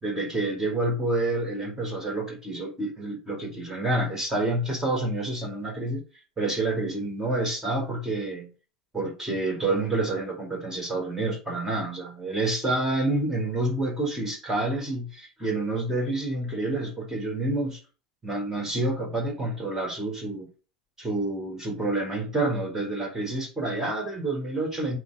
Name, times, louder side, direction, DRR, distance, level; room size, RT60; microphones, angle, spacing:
voice 1, 0.0-6.0 6.4-8.5 8.9-17.8 18.2-20.5 21.0-25.0, right 2 dB, 10° right, 4.0 m, -28 dB
8.3 x 3.3 x 6.3 m
figure-of-eight pair, 80°, 4 cm